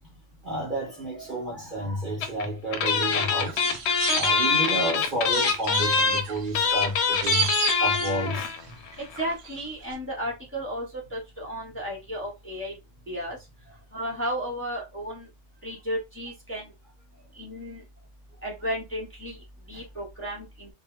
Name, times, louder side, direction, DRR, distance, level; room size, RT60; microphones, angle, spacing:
voice 1, 0.4-3.6 4.1-7.5 7.8-8.5 13.7-13.8 19.7-19.8, right 1 dB, 50° right, 0.8 m, -31 dB
sound 1, 2.2-2.4 2.7-8.6 8.9-9.0 9.1-9.3, left 5 dB, 65° left, 0.8 m, -24 dB
sound 2, 3.1-4.9 5.3-8.6 8.9-9.6 9.8-9.9, right 6 dB, 80° right, 1.0 m, -32 dB
voice 2, 9.2-10.9 11.1-12.7 13.1-13.4 13.9-15.3 15.6-16.7 17.4-17.8 18.4-19.4 19.7-20.7, equal, 10° left, 0.8 m, -33 dB
2.3 x 2.1 x 3.0 m
omnidirectional pair, 1.3 m